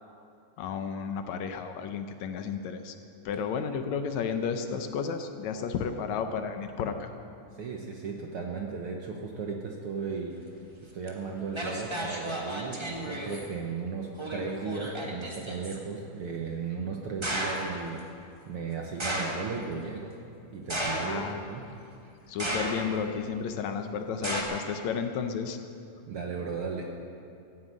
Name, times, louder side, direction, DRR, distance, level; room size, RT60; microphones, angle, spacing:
voice 1, 0.6-2.9 3.3-7.1 21.0-21.4 22.3-25.6, left 6 dB, 75° left, 7 dB, 1.9 m, -32 dB
voice 2, 7.5-10.4 10.9-18.0 18.5-20.1 20.5-21.6 26.1-26.9, right 5 dB, 65° right, 1 dB, 1.5 m, -35 dB
sound 1, 11.1-11.2 11.5-13.5 14.2-15.7 17.2-17.8 19.0-19.6 20.7-21.4 22.4-23.0 24.2-24.4, equal, 30° right, 0.4 m, -33 dB
14.5 x 8.9 x 8.7 m, 2.6 s
omnidirectional pair, 3.5 m